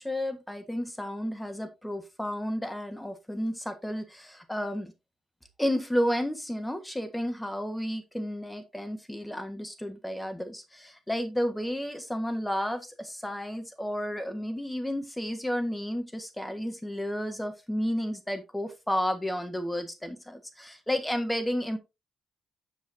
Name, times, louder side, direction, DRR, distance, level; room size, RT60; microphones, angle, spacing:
voice 1, 0.0-4.9 5.6-21.8, equal, 5° left, 1.4 m, -32 dB
8.2 x 7.4 x 2.7 m
cardioid pair, 75°, 0 cm